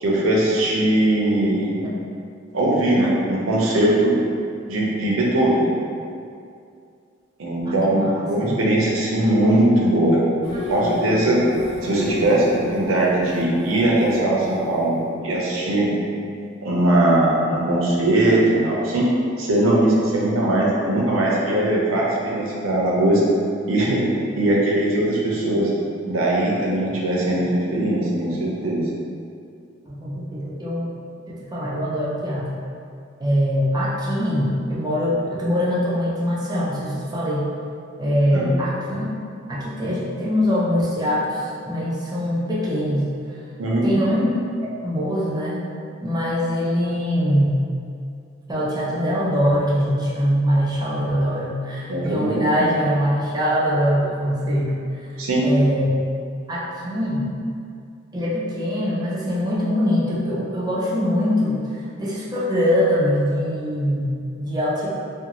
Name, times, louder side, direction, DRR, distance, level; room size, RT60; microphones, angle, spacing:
voice 1, 0.0-1.8 2.5-4.2 4.7-5.7 7.4-10.2 10.7-11.4 11.8-15.9 16.6-19.1 19.4-23.2 23.7-24.0 24.4-25.7 26.1-28.8 38.3-38.4 43.6-43.9 51.9-52.5 55.2-55.5, right 1 dB, 85° right, -4 dB, 0.6 m, -20 dB
voice 2, 7.6-8.5 29.9-30.9 31.3-32.6 33.2-37.5 38.0-39.1 39.5-43.1 43.8-45.6 46.0-47.6 48.5-54.9 55.4-56.0 56.5-57.3 58.1-64.9, equal, 20° right, -6 dB, 0.4 m, -23 dB
sound 1, 10.4-15.3, left 2 dB, 70° left, 0.4 m, -31 dB
2.5 x 2.3 x 2.9 m, 2.4 s
head